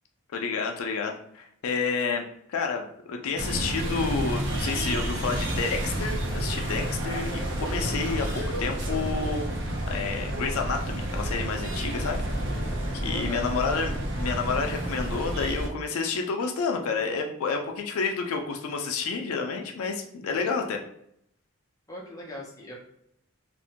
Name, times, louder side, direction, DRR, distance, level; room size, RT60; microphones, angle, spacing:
voice 1, 0.3-2.2 2.5-12.2 12.5-12.6 13.0-20.8, left 5 dB, 75° left, 3 dB, 0.4 m, -30 dB
sound 1, 3.4-15.7, right 1 dB, 50° right, 0.6 m, -30 dB
voice 2, 13.1-13.4 21.9-22.7, left 1 dB, 15° left, -3 dB, 0.5 m, -40 dB
2.5 x 2.1 x 2.8 m, 0.73 s
head